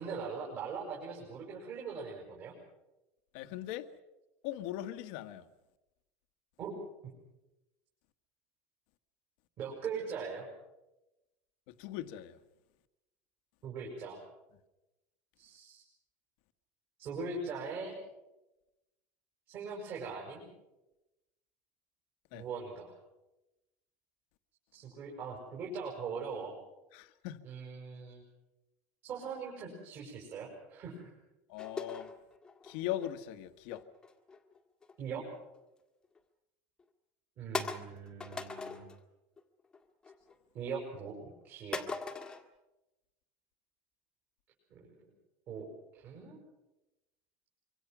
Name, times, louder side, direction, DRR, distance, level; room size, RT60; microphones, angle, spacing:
voice 1, 0.0-2.5 6.6-6.7 9.6-10.5 13.6-14.2 15.4-15.8 17.0-17.9 19.5-20.4 22.3-22.9 24.7-26.5 27.4-28.2 29.0-31.1 35.0-35.2 37.4-38.8 40.5-41.8 44.7-44.9 45.5-45.7 46.0-46.4, right 5 dB, 40° right, 6.1 m, -41 dB
voice 2, 3.3-3.9 4.4-5.5 11.7-12.4 22.3-22.4 26.9-27.4 31.5-32.1 32.6-33.8, left 13 dB, 65° left, 1.4 m, -40 dB
sound 1, 31.6-33.1 33.7-35.0 35.4-35.6 36.1-36.2 36.8-36.9 37.5-39.0 39.4-39.8 40.0-40.7 41.7-42.4, left 4 dB, 10° left, 1.7 m, -40 dB
25.5 x 25.0 x 6.1 m
cardioid pair, 170°, 6 cm